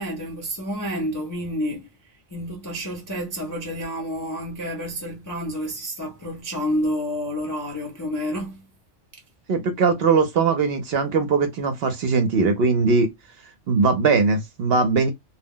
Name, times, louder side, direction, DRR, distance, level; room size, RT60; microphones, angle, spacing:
voice 1, 0.0-1.9 2.3-8.6, equal, 30° left, 0.3 m, -29 dB
voice 2, 9.5-13.1 13.7-15.1, right 4 dB, 60° right, 0.7 m, -20 dB
2.2 x 2.0 x 3.6 m
omnidirectional pair, 1.3 m